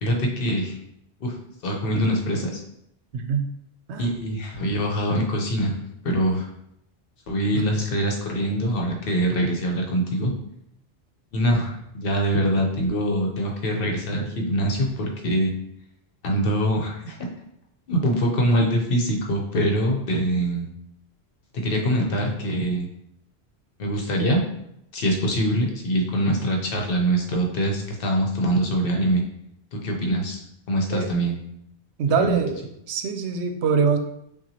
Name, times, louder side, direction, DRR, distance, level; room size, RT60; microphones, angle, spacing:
voice 1, 0.0-0.8 1.2-1.3 1.6-2.6 4.0-5.8 6.0-6.5 7.3-10.3 11.3-15.5 16.2-17.3 17.9-20.7 21.6-22.9 23.8-24.4 24.9-29.2 29.7-30.4 30.7-31.4 32.2-32.4, right 1 dB, 55° left, 1 dB, 0.9 m, -23 dB
voice 2, 3.1-3.5 3.9-4.1 7.5-7.6 30.9-31.1 32.0-32.6 32.9-34.0, right 6 dB, 75° right, 6 dB, 0.9 m, -23 dB
5.8 x 2.4 x 2.8 m, 0.77 s
omnidirectional pair, 1.2 m